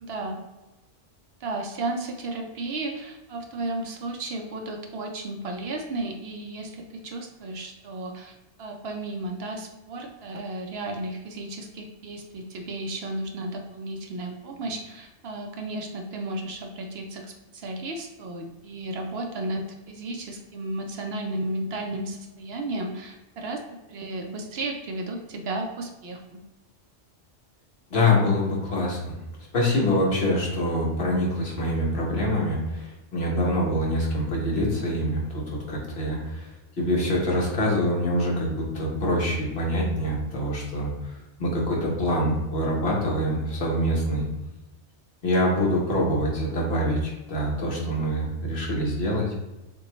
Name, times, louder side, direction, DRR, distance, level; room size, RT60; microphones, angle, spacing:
voice 1, 0.0-0.4 1.4-8.3 8.6-23.6 23.9-26.4, right 2 dB, 65° right, 2 dB, 0.8 m, -33 dB
voice 2, 27.9-29.1 29.5-41.1 41.4-44.3 45.2-49.3, left 1 dB, 65° left, -3 dB, 1.4 m, -25 dB
6.8 x 2.3 x 3.0 m, 1.0 s
omnidirectional pair, 1.2 m